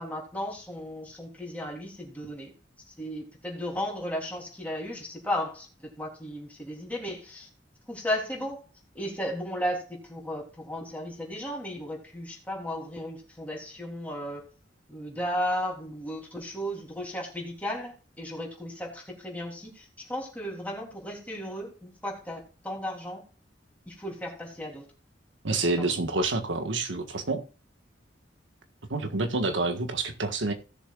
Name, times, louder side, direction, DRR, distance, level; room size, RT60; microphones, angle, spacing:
voice 1, 0.0-2.5 3.0-7.5 7.9-8.6 8.9-14.4 14.9-23.2 23.9-24.8 25.5-26.0, equal, 10° left, 3.4 m, -35 dB
voice 2, 25.4-27.4 28.9-30.5, right 3 dB, 90° right, 1.6 m, -28 dB
17.5 x 7.0 x 2.5 m
head